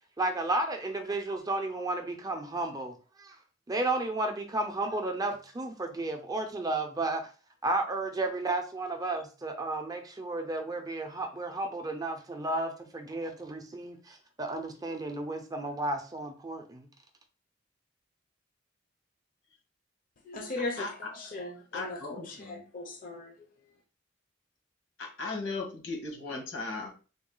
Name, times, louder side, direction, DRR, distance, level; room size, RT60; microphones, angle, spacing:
voice 1, 0.2-3.4 3.7-7.3 7.6-16.9, right 2 dB, 20° right, 5 dB, 0.5 m, -33 dB
voice 2, 20.2-23.5, left 2 dB, 45° left, 1 dB, 0.6 m, -38 dB
voice 3, 21.7-22.6 25.0-26.9, left 3 dB, 85° left, 0 dB, 1.6 m, -37 dB
3.8 x 2.2 x 3.7 m, 0.35 s
head